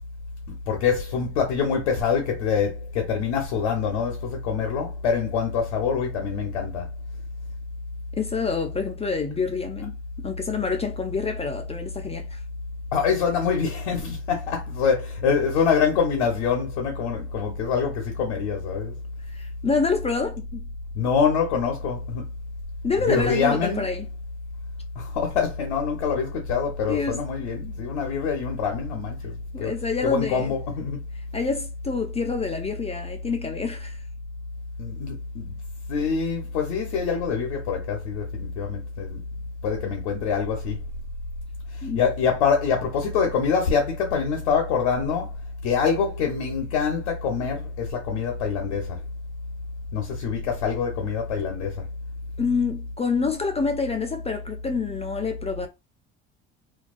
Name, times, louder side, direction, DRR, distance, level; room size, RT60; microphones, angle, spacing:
voice 1, 0.5-6.9 12.9-18.9 20.9-22.2 23.1-23.9 25.0-29.7 30.0-31.0 34.8-35.6 35.9-39.2 39.6-40.8 41.7-45.4 45.6-49.0 49.9-51.8, left 6 dB, 80° left, 0.7 m, -25 dB
voice 2, 8.2-12.4 19.3-20.7 22.8-24.1 26.9-27.2 29.5-30.5 31.3-34.0 41.8-42.0 52.4-55.7, left 4 dB, 20° left, 0.4 m, -27 dB
2.3 x 2.3 x 2.4 m
hypercardioid pair, 60°, 32 cm